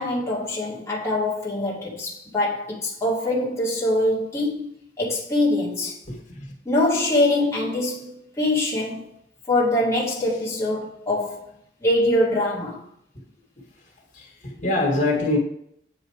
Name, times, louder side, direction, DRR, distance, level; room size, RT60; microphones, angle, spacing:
voice 1, 0.0-4.7 5.0-6.0 6.7-9.1 9.5-11.4 11.8-12.8, left 1 dB, 15° left, 2.1 m, -23 dB
voice 2, 6.1-6.5 14.1-15.4, left 2 dB, 45° left, 2.3 m, -24 dB
8.8 x 5.0 x 4.8 m
head